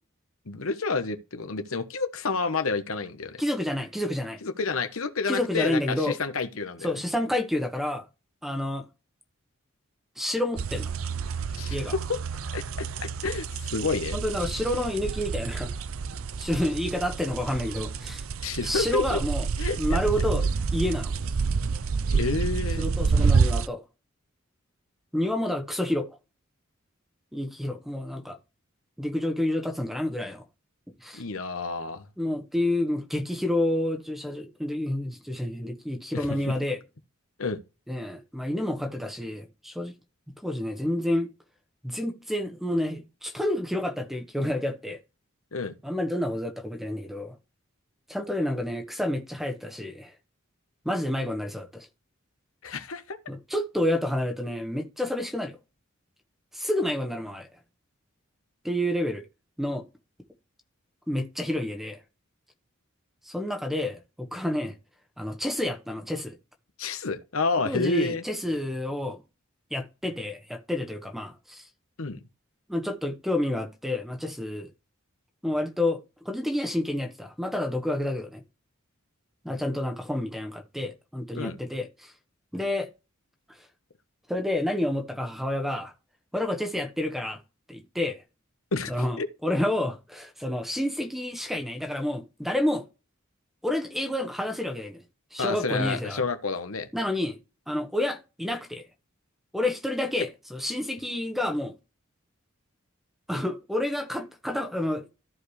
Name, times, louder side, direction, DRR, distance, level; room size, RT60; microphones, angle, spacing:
voice 1, 0.5-3.4 4.4-6.9 11.5-12.2 12.5-14.2 18.4-19.2 19.6-20.0 22.1-22.9 31.1-32.0 36.1-36.5 37.4-37.6 45.5-45.7 52.6-53.2 66.8-68.2 72.0-72.2 81.3-81.6 88.7-88.9 89.2-89.3 95.4-96.9, left 4 dB, 90° left, 1.1 m, -29 dB
voice 2, 3.4-4.4 5.3-6.2 6.8-8.1 8.4-8.9 10.2-10.9 11.7-11.9 14.1-15.7 16.4-18.2 18.6-19.5 19.8-20.5 20.7-21.1 22.8-23.8 25.1-26.2 27.3-28.4 29.0-30.4 31.0-31.2 32.2-36.8 37.9-39.9 40.4-41.3 41.8-45.0 45.8-47.4 48.1-50.1 50.8-51.9 53.3-55.6 56.5-57.5 58.6-59.3 59.6-59.8 61.1-62.0 63.2-64.7 65.2-66.3 67.6-69.2 69.7-71.6 72.7-74.7 75.4-78.4 79.4-82.1 82.5-82.9 84.3-85.9 86.3-87.4 87.7-88.2 88.9-92.8 93.6-95.0 95.3-96.2 96.9-97.4 97.7-98.8 99.5-101.7 103.3-105.1, left 1 dB, ahead, 1.2 m, -29 dB
sound 1, 10.6-23.7, right 5 dB, 80° right, 0.6 m, -28 dB
14.0 x 4.9 x 3.3 m
head